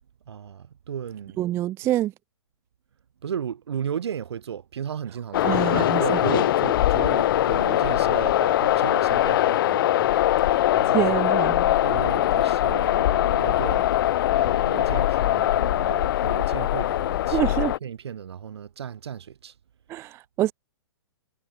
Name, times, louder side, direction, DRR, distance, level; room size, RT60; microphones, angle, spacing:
voice 1, 0.3-1.4 3.2-11.2 11.8-13.9 14.3-19.5, right 8 dB, 65° right, 5.6 m, -34 dB
voice 2, 1.4-2.1 5.4-6.2 10.9-11.7 17.3-17.7 19.9-20.5, right 14 dB, 15° right, 0.4 m, -26 dB
sound 1, 5.3-17.8, left 13 dB, 50° left, 1.6 m, -22 dB
figure-of-eight pair, 120°, 15 cm